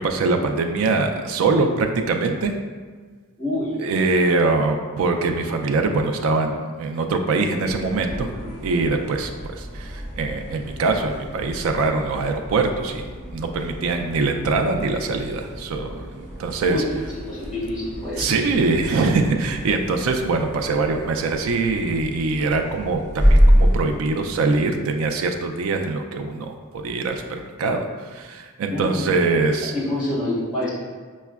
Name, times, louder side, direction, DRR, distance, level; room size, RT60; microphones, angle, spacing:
voice 1, 0.0-2.5 3.8-8.3 8.6-13.1 13.3-15.9 16.4-16.8 18.2-27.8 28.1-29.7, right 3 dB, 65° right, 5 dB, 0.3 m, -23 dB
voice 2, 3.4-3.9 4.3-4.6 8.1-8.5 16.7-18.5 28.7-29.1 29.7-30.7, left 1 dB, 5° right, -10 dB, 1.3 m, -28 dB
sound 1, 7.6-24.0, equal, 30° right, 1.3 m, -26 dB
5.6 x 2.1 x 2.3 m, 1.5 s
head